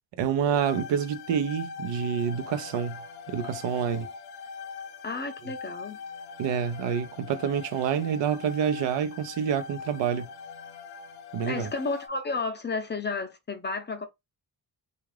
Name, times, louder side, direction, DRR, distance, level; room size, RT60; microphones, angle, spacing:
voice 1, 0.2-4.1 6.4-10.3 11.3-11.7, right 8 dB, 80° right, 0.6 m, -28 dB
sound 1, 0.6-12.1, left 6 dB, 65° left, 0.6 m, -42 dB
voice 2, 5.0-6.0 11.5-14.0, left 3 dB, 25° left, 0.6 m, -32 dB
3.5 x 2.4 x 3.3 m
wide cardioid pair, 145°, 43 cm